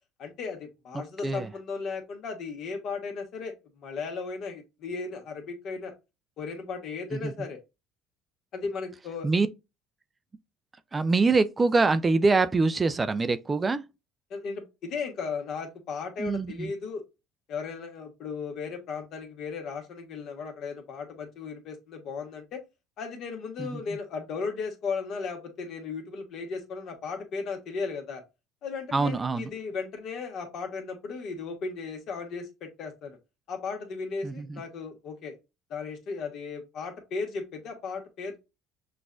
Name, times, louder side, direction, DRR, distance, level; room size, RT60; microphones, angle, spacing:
voice 1, 0.2-5.9 6.4-7.6 8.5-9.3 14.3-17.0 17.5-22.6 23.0-28.2 28.6-33.2 33.5-35.3 35.7-38.4, left 5 dB, 60° left, 1.4 m, -36 dB
voice 2, 0.9-1.5 7.1-7.3 9.2-9.5 10.9-13.8 16.2-16.7 23.6-23.8 28.9-29.5 34.2-34.6, right 3 dB, 20° right, 0.4 m, -25 dB
6.0 x 2.5 x 2.3 m
supercardioid pair, 105°, 0 cm